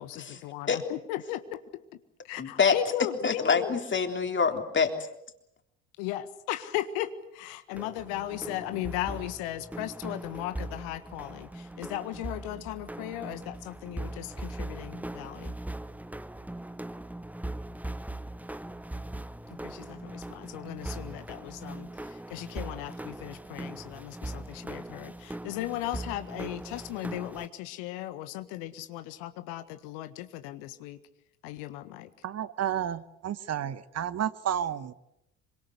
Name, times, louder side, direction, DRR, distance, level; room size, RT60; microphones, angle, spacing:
voice 1, 0.0-1.6 2.2-3.7 6.0-15.6 19.6-31.0 31.4-32.1, left 14 dB, 60° left, 11 dB, 1.7 m, -37 dB
voice 2, 2.4-2.8 3.2-5.0, left 6 dB, 30° left, 5 dB, 3.6 m, -26 dB
sound 1, 7.7-27.5, right 1 dB, 5° right, 1.0 m, -40 dB
voice 3, 32.2-34.9, right 10 dB, 40° right, 15 dB, 1.2 m, -31 dB
26.5 x 24.5 x 8.2 m, 0.83 s
figure-of-eight pair, 55°, 39 cm